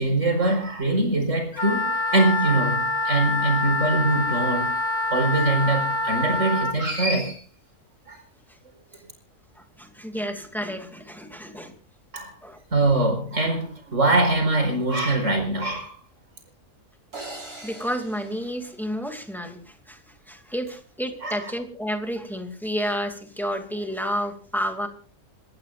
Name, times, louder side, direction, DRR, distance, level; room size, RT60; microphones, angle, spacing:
voice 1, 0.0-4.7 5.1-7.4 8.1-8.2 12.1-12.3 12.7-16.0 21.2-21.5, right 2 dB, 55° right, 5.2 m, -23 dB
Wind instrument woodwind instrument, 1.5-6.8, left 2 dB, 55° left, 1.6 m, -25 dB
voice 2, 9.6-11.7 12.4-12.6 15.4-15.5 17.6-20.0 20.3-24.9, equal, ahead, 2.5 m, -30 dB
sound 1, 17.1-19.5, right 2 dB, 90° right, 5.4 m, -42 dB
28.5 x 14.5 x 2.5 m
omnidirectional pair, 1.5 m